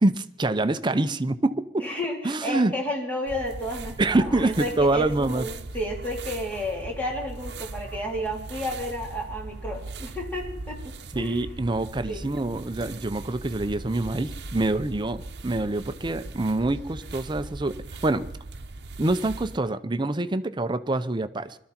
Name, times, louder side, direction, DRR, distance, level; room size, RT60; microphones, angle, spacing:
voice 1, 0.0-1.8 2.2-2.7 4.0-5.5 11.1-17.8 18.0-18.3 19.0-21.6, right 2 dB, 25° right, 12 dB, 0.6 m, -25 dB
voice 2, 1.8-11.7 12.1-12.2, left 1 dB, 10° left, -2 dB, 3.6 m, -32 dB
sound 1, 3.3-19.6, right 2 dB, 70° right, 0.8 m, -39 dB
21.5 x 13.0 x 4.4 m, 0.74 s
head